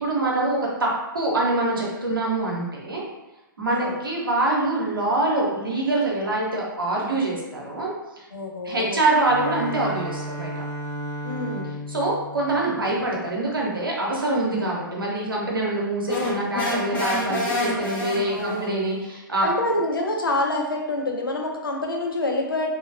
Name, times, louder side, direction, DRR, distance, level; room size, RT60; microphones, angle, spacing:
voice 1, 0.0-3.0 3.6-8.3 8.6-10.5 11.9-19.5, right 2 dB, 80° right, -3 dB, 0.7 m, -25 dB
voice 2, 3.7-4.0 8.3-9.0 11.2-11.8 18.3-18.8 19.4-22.7, left 2 dB, 80° left, 1 dB, 0.5 m, -27 dB
Bowed string instrument, 9.2-13.5, equal, 40° right, 0.5 m, -34 dB
sound 1, 16.1-18.7, left 1 dB, 15° left, 0.6 m, -28 dB
2.7 x 2.2 x 2.4 m, 1.0 s
figure-of-eight pair, 110°, 12 cm